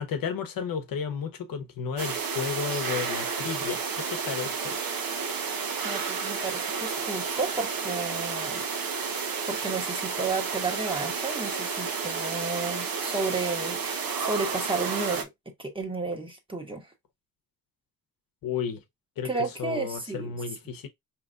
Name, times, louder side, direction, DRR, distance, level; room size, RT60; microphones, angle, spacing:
voice 1, 0.0-4.8 18.4-18.8 19.2-19.3 19.6-20.9, left 6 dB, 65° left, 0.9 m, -33 dB
sound 1, 2.0-15.2, right 5 dB, 70° right, 1.0 m, -31 dB
voice 2, 5.8-8.6 9.5-15.3 15.6-16.9 19.2-20.4, right 3 dB, 15° right, 1.2 m, -32 dB
4.8 x 2.9 x 2.4 m
cardioid pair, 105°, 37 cm